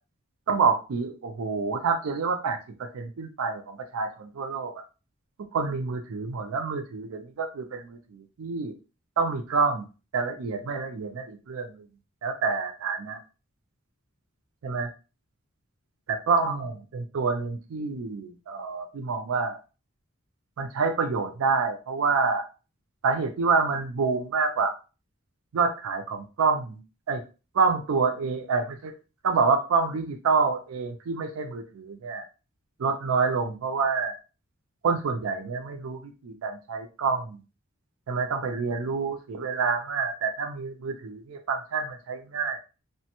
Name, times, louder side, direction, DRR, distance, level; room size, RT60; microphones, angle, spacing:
voice 1, 0.5-4.7 5.5-8.7 9.2-9.8 10.1-11.8 12.2-13.2 14.6-14.9 16.1-19.6 20.6-22.5 23.0-24.7 25.5-26.8 27.1-27.2 27.5-28.9 29.2-32.2 32.8-34.1 34.8-37.4 38.1-42.6, right 4 dB, 90° right, 6 dB, 0.4 m, -27 dB
2.9 x 2.1 x 2.9 m, 0.32 s
head